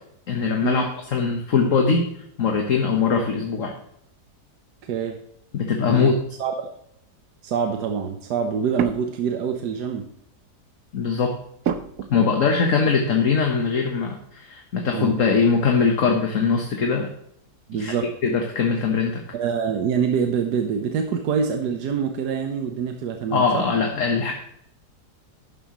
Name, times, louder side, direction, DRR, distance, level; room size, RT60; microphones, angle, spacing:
voice 1, 0.3-2.1 2.4-3.7 5.5-6.2 10.9-11.4 12.1-17.1 17.7-19.2 23.3-24.3, left 5 dB, 55° left, 3 dB, 1.5 m, -21 dB
voice 2, 7.4-10.1 14.9-15.2 17.7-18.1 19.3-23.7, right 6 dB, 85° right, 4 dB, 1.5 m, -25 dB
sound 1, 8.7-9.5 10.0-10.3 11.6-12.6 13.0-13.1 15.4-15.7 16.0-16.7, right 8 dB, 65° right, 1.1 m, -32 dB
12.5 x 10.5 x 3.1 m, 0.73 s
omnidirectional pair, 1.7 m